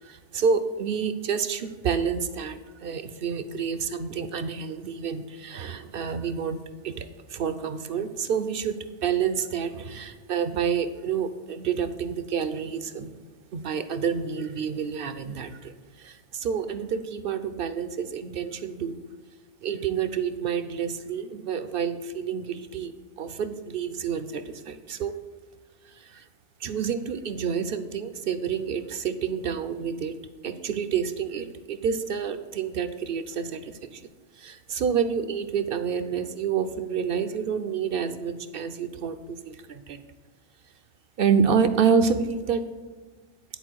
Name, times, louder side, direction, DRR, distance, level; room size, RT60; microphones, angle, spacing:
voice 1, 0.0-13.1 13.5-15.7 16.0-19.0 19.6-25.1 25.9-26.3 26.6-30.2 30.4-34.0 34.4-40.0 41.2-42.7, right 6 dB, 60° right, 11 dB, 0.7 m, -28 dB
10.0 x 4.4 x 6.2 m, 1.4 s
omnidirectional pair, 1.2 m